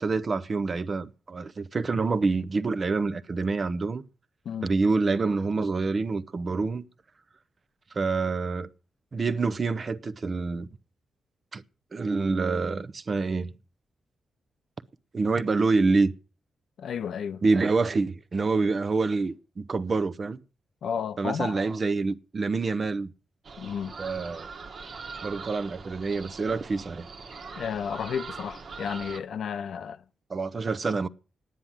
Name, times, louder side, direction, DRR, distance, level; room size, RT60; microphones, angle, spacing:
voice 1, 0.0-4.0 4.6-6.8 7.9-8.7 9.1-10.7 11.5-11.6 11.9-13.5 15.1-16.1 17.4-20.4 21.2-23.1 24.0-24.5 25.2-27.1 30.3-31.1, right 3 dB, 35° right, 0.7 m, -27 dB
voice 2, 16.8-17.4 20.8-21.5 23.6-23.9 27.5-30.0, left 7 dB, 75° left, 0.7 m, -32 dB
sound 1, 23.4-29.2, right 4 dB, 55° right, 1.4 m, -42 dB
10.0 x 9.7 x 7.3 m
wide cardioid pair, 125°, 0 cm